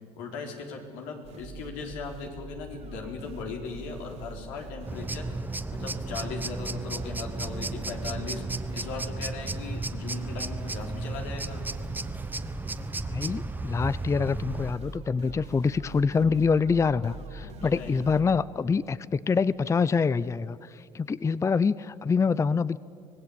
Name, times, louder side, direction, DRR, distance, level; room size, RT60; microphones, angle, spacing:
voice 1, 0.2-5.3 5.7-8.4 8.7-11.7 17.4-18.0, left 4 dB, 85° left, 2 dB, 4.1 m, -38 dB
sound 1, 1.2-18.4, right 2 dB, 55° right, 2.3 m, -44 dB
sound 2, 4.9-14.7, right 2 dB, 15° right, 1.1 m, -34 dB
voice 2, 13.0-22.8, left 5 dB, 20° left, 18 dB, 0.5 m, -26 dB
25.0 x 18.5 x 8.8 m, 2.5 s
supercardioid pair, 90°, 14 cm